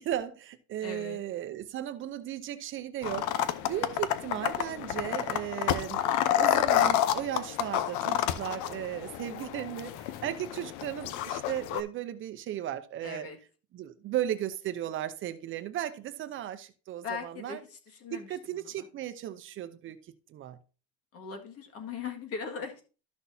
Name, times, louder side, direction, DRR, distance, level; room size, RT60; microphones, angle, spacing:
voice 1, 0.0-3.3 3.7-6.0 6.4-13.3 13.7-17.6 18.1-20.0 20.3-20.6, right 11 dB, 45° right, 0.7 m, -36 dB
voice 2, 0.8-1.2 13.0-13.4 17.0-18.3 18.8-18.9 21.1-22.8, left 6 dB, 55° left, 1.9 m, -39 dB
sound 1, 3.0-11.8, left 11 dB, 85° left, 0.8 m, -29 dB
12.5 x 6.1 x 2.7 m
cardioid pair, 150°, 29 cm